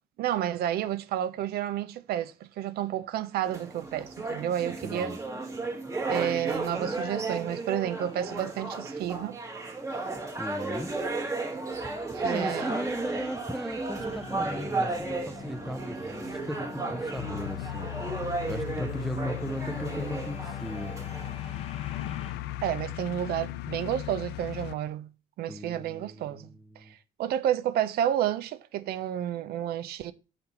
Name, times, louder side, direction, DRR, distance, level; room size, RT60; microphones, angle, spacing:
voice 1, 0.2-5.1 6.1-9.4 12.1-12.7 22.6-25.1 25.4-26.5 27.2-30.1, right 11 dB, 70° right, 0.6 m, -30 dB
sound 1, 3.4-21.3, right 3 dB, 20° right, 1.3 m, -34 dB
voice 2, 4.8-5.2 10.4-10.9 12.2-17.9 18.5-20.9 25.5-26.9, equal, ahead, 0.5 m, -37 dB
sound 2, 14.0-22.3, left 4 dB, 35° left, 1.0 m, -46 dB
sound 3, 17.2-24.8, left 14 dB, 80° left, 0.4 m, -37 dB
6.9 x 4.3 x 4.1 m
cardioid pair, 110°, 17 cm